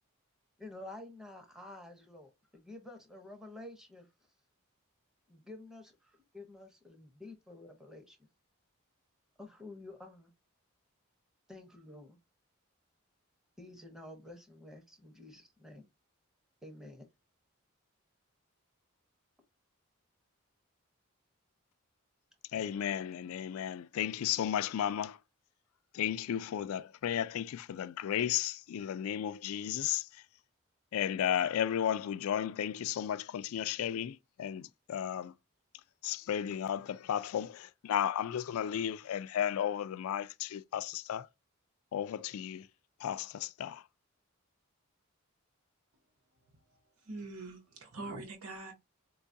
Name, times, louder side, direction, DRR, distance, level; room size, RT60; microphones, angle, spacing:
voice 1, 0.6-4.1 5.3-8.3 9.4-10.3 11.5-12.2 13.6-15.9 16.6-17.1, left 2 dB, ahead, 0.7 m, -50 dB
voice 2, 22.5-25.2 25.9-30.2 30.9-35.3 36.0-41.3 41.9-42.7 43.0-43.8, left 9 dB, 75° left, 0.3 m, -34 dB
voice 3, 46.7-48.7, right 2 dB, 90° right, 1.0 m, -44 dB
4.5 x 2.3 x 2.6 m
head